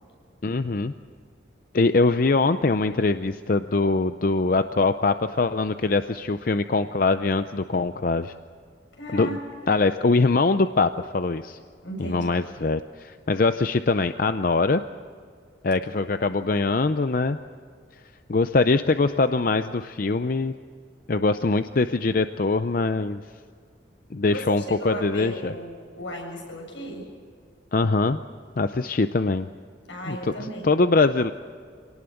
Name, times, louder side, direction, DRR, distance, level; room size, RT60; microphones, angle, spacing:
voice 1, 0.4-0.9 1.7-8.3 9.1-9.4 9.7-11.6 12.0-14.8 15.6-17.4 18.3-20.5 21.1-23.2 24.1-25.5 27.7-28.2 28.6-29.5 30.1-30.3 30.6-31.3, left 3 dB, 50° left, 10 dB, 0.5 m, -22 dB
voice 2, 9.0-9.8 11.8-12.3 24.3-27.1 29.9-30.8, equal, 80° left, 1 dB, 7.3 m, -35 dB
26.0 x 18.5 x 7.8 m, 2.1 s
head